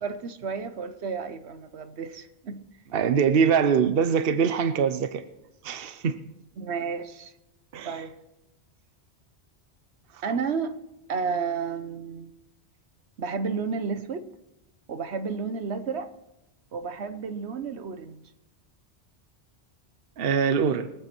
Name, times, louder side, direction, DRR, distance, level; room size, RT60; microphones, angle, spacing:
voice 1, 0.0-2.6 6.6-7.3 7.8-8.1 10.2-10.8 11.1-12.3 13.2-14.3 14.9-16.1 16.7-18.2, right 5 dB, 80° right, 1.2 m, -31 dB
voice 2, 2.9-5.2 5.6-6.2 7.7-8.0 20.2-20.9, right 6 dB, 65° right, 1.0 m, -23 dB
22.5 x 7.9 x 4.4 m
omnidirectional pair, 1.1 m